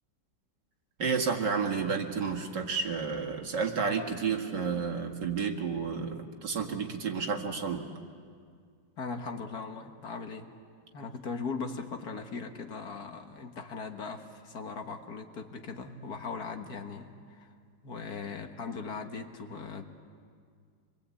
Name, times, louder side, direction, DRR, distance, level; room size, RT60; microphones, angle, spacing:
voice 1, 1.0-7.9, right 5 dB, 75° right, 2 dB, 2.5 m, -31 dB
voice 2, 9.0-10.5 10.9-17.5 17.8-19.8, left 4 dB, 60° left, 5 dB, 1.9 m, -39 dB
27.0 x 22.5 x 8.4 m, 2.1 s
omnidirectional pair, 1.9 m